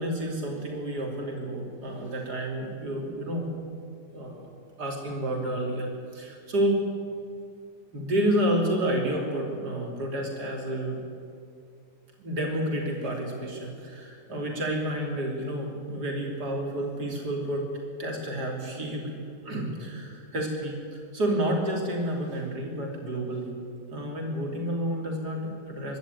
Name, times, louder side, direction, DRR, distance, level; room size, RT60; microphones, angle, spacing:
voice 1, 0.0-3.5 4.1-4.5 4.8-6.8 7.9-11.0 12.2-17.7 18.0-19.2 19.4-23.5 23.9-26.0, right 1 dB, 75° right, 0 dB, 3.8 m, -30 dB
24.5 x 12.5 x 9.3 m, 2.4 s
omnidirectional pair, 1.8 m